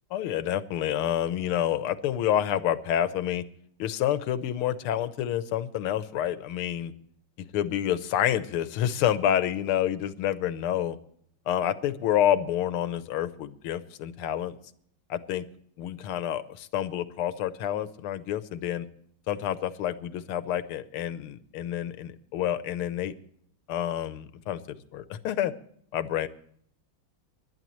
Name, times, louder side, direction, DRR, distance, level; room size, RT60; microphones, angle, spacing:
voice 1, 0.1-3.5 3.8-6.9 7.5-11.0 11.5-14.6 15.1-15.5 15.8-18.9 19.3-23.1 23.7-25.5 25.9-26.3, left 11 dB, 90° left, 13 dB, 1.8 m, -28 dB
26.5 x 11.5 x 3.1 m, 0.64 s
omnidirectional pair, 2.3 m